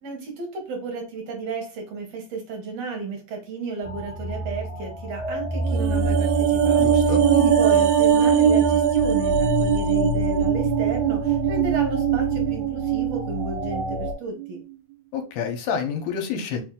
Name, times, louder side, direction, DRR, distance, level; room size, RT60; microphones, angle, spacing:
voice 1, 0.0-14.6, right 4 dB, 65° right, 2 dB, 2.0 m, -33 dB
sound 1, 3.8-14.1, left 1 dB, 30° right, 1.1 m, -29 dB
sound 2, 5.6-14.1 14.4-14.5, right 9 dB, 80° right, 2.0 m, -21 dB
voice 2, 6.8-7.2 15.1-16.6, left 7 dB, 80° left, 5 dB, 2.3 m, -28 dB
4.8 x 2.7 x 3.6 m, 0.35 s
omnidirectional pair, 3.6 m